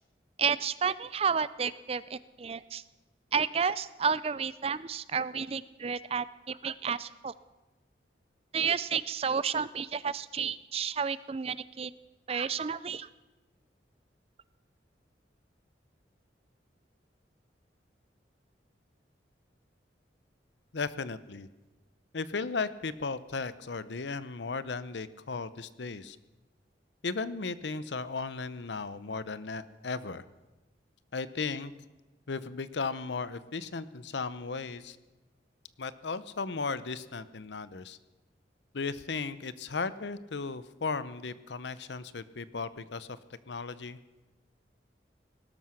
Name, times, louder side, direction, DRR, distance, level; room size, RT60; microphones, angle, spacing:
voice 1, 0.4-2.8 3.3-7.3 8.5-11.9 12.3-13.1, right 6 dB, 35° right, 17 dB, 0.4 m, -31 dB
voice 2, 20.7-21.5 22.1-26.2 27.0-30.2 31.1-31.7 32.3-35.0 35.8-38.0 38.7-43.1 43.5-44.0, left 4 dB, 75° left, 15 dB, 0.7 m, -36 dB
19.0 x 12.5 x 5.9 m, 1.1 s
head